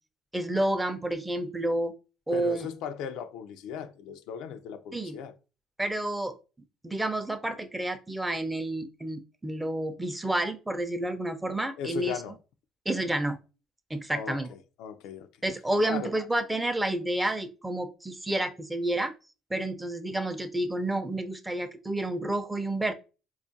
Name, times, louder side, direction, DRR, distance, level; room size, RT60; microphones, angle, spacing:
voice 1, 0.3-1.9 2.3-2.7 4.9-5.2 5.8-6.4 6.8-12.2 12.9-13.4 13.9-14.5 15.4-19.1 19.5-22.9, right 1 dB, 10° right, 0.5 m, -30 dB
voice 2, 2.3-5.3 11.8-12.4 14.1-15.3 15.9-16.1, left 8 dB, 75° left, 0.4 m, -37 dB
4.2 x 2.4 x 2.6 m
supercardioid pair, 70°, 0 cm